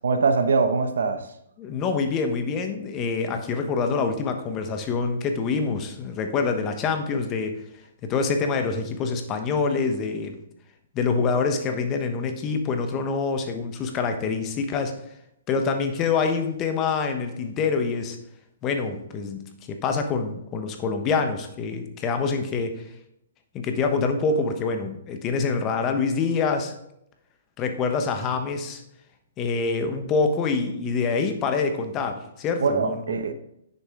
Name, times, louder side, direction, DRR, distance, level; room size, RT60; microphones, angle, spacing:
voice 1, 0.0-1.2 32.6-33.3, right 4 dB, 80° right, 8 dB, 1.0 m, -22 dB
voice 2, 1.6-7.6 8.0-10.4 10.9-14.9 15.5-18.2 18.6-22.8 23.5-26.7 27.6-28.8 29.4-33.0, left 4 dB, 25° left, 6 dB, 1.2 m, -26 dB
9.4 x 6.9 x 3.7 m, 0.77 s
hypercardioid pair, 140°, 0 cm